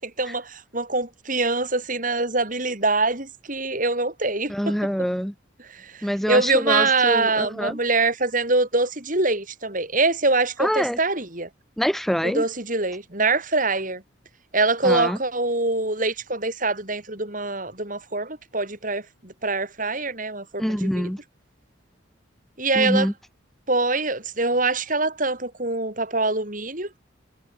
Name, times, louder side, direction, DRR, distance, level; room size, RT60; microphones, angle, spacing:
voice 1, 0.0-4.7 5.7-11.5 12.2-14.0 14.5-21.1 22.6-23.1 23.7-26.9, right 3 dB, 40° right, 6.5 m, -24 dB
voice 2, 4.5-5.3 6.0-7.8 10.6-11.0 11.8-12.5 14.8-15.2 20.6-21.2 22.7-23.1, equal, ahead, 6.1 m, -25 dB
head